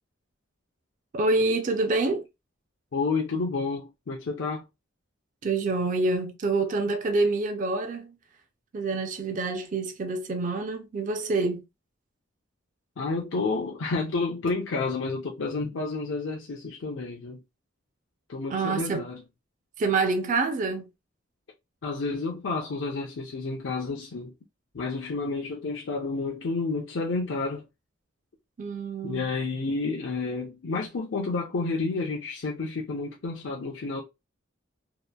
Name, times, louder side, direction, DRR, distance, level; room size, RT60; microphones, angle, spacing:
voice 1, 1.1-2.2 5.4-8.2 8.7-11.6 18.5-19.0 19.8-20.9 28.6-29.3, right 3 dB, 40° right, 0.4 m, -27 dB
voice 2, 2.9-4.6 13.0-17.4 18.3-19.2 21.8-24.3 24.7-27.7 29.0-34.0, left 3 dB, 65° left, 0.5 m, -30 dB
2.8 x 2.4 x 2.2 m
head